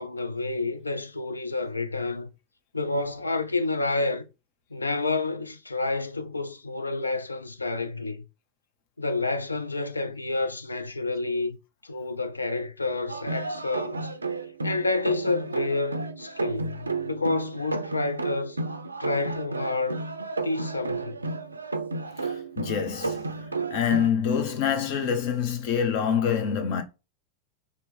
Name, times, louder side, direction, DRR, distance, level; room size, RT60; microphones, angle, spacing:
voice 1, 0.0-2.3 2.7-4.3 4.7-8.2 9.0-11.6 11.8-14.1 14.6-18.6 19.0-20.0 20.4-21.2, left 3 dB, 80° left, 0.4 m, -29 dB
sound 1, 13.1-24.1, right 3 dB, 80° right, 0.4 m, -32 dB
voice 2, 22.2-26.8, left 7 dB, 50° left, 0.8 m, -26 dB
2.9 x 2.9 x 3.4 m
figure-of-eight pair, 90°, 0 cm